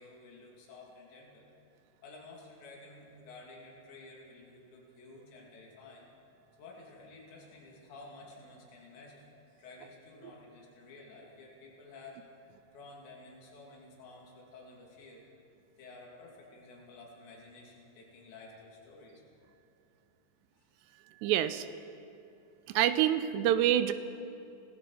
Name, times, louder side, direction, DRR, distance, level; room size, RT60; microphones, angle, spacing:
voice 1, 0.0-1.4 2.0-6.1 6.6-12.2 12.7-15.3 15.8-19.2 20.6-20.7, left 3 dB, 90° left, -2 dB, 5.0 m, -52 dB
voice 2, 21.2-21.7 22.7-23.9, right 12 dB, 85° right, 12 dB, 2.9 m, -26 dB
26.0 x 18.0 x 5.7 m, 2.7 s
omnidirectional pair, 4.9 m